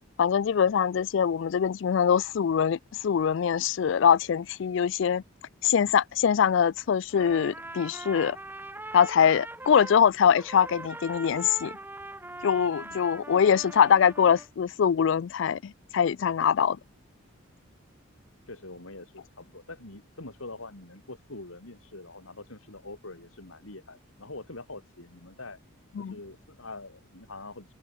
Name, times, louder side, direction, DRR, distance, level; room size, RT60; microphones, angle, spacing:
voice 1, 0.2-5.2 5.6-8.4 8.9-11.7 12.4-16.8 26.0-26.2, left 7 dB, 60° left, 0.3 m, -23 dB
Trumpet, 7.1-10.0 10.4-14.5, right 2 dB, 10° right, 2.8 m, -41 dB
voice 2, 18.5-25.6 26.0-27.7, left 2 dB, 75° left, 3.8 m, -44 dB
head